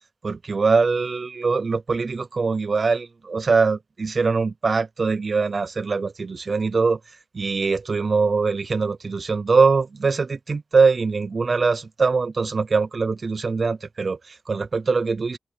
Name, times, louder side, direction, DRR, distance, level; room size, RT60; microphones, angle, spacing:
voice 1, 0.2-7.0 7.3-15.4, right 4 dB, 60° right, 0.6 m, -22 dB
cardioid pair, 55°, 0 cm